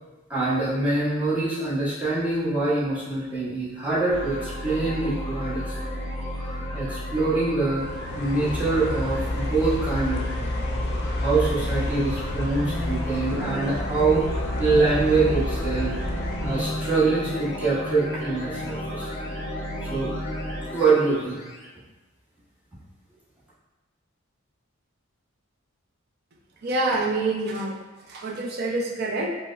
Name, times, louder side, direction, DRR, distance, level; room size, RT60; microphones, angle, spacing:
voice 1, 0.3-5.7 6.4-7.8 8.2-10.5 11.2-16.1 16.4-19.1 19.8-20.1 20.7-21.4, right 3 dB, 10° right, -11 dB, 1.0 m, -25 dB
sound 1, 4.1-21.6, equal, 30° left, 0.8 m, -33 dB
sound 2, 7.8-16.6, left 1 dB, 50° left, 0.4 m, -30 dB
voice 2, 26.6-27.7 28.1-29.3, right 2 dB, 50° right, 0 dB, 0.5 m, -26 dB
4.6 x 2.0 x 2.3 m, 1.2 s
head